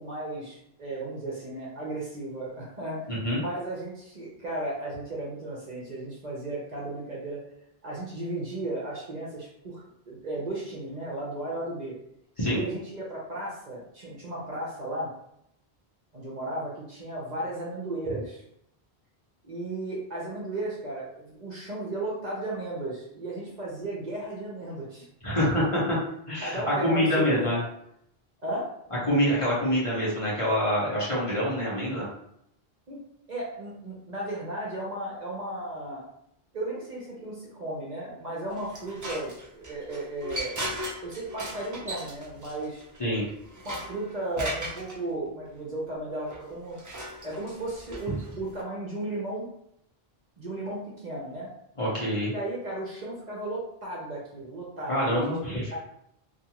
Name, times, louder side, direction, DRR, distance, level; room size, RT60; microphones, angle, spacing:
voice 1, 0.0-3.1 3.4-7.4 7.8-11.9 12.5-15.1 16.1-18.4 19.4-25.4 26.4-27.5 28.4-28.7 32.9-33.0 33.3-36.0 36.5-40.6 41.0-42.9 43.6-46.8 47.2-49.5 50.4-51.5 52.2-55.8, right 2 dB, 50° right, -4 dB, 0.7 m, -35 dB
voice 2, 3.1-3.4 12.4-12.6 25.2-26.0 26.3-27.6 29.1-32.1 43.0-43.3 51.8-52.3 54.9-55.6, equal, 35° left, -7 dB, 0.9 m, -26 dB
sound 1, 38.5-45.0 46.3-48.6, equal, 30° right, 0.3 m, -38 dB
2.5 x 2.4 x 2.9 m, 0.75 s
omnidirectional pair, 1.1 m